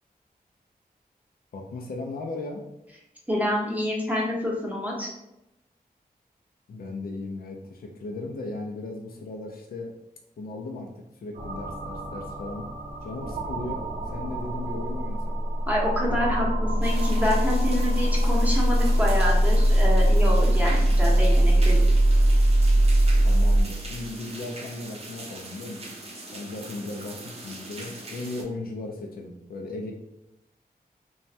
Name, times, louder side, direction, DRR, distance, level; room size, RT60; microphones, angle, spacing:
voice 1, 1.5-2.6 6.7-9.9 10.4-12.7 13.0-15.3 23.2-25.8 26.3-29.9, left 2 dB, 70° left, 0 dB, 0.4 m, -36 dB
voice 2, 3.3-5.1 15.7-21.8, equal, 10° right, -3 dB, 0.8 m, -27 dB
sound 1, 11.3-23.6, right 1 dB, 85° right, 0.6 m, -22 dB
sound 2, 16.8-28.4, right 2 dB, 40° right, 0.5 m, -41 dB
3.0 x 2.2 x 2.7 m, 0.89 s
wide cardioid pair, 95°, 16 cm